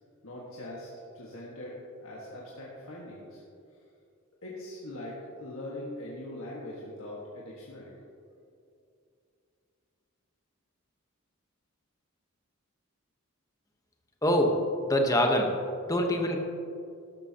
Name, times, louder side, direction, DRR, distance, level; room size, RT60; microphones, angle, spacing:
voice 1, 0.2-0.9 1.1-3.4 4.4-8.0, left 1 dB, 75° left, -6 dB, 1.6 m, -41 dB
voice 2, 14.2-15.6 15.9-16.4, equal, 15° left, 3 dB, 1.0 m, -25 dB
13.0 x 12.5 x 2.9 m, 2.5 s
head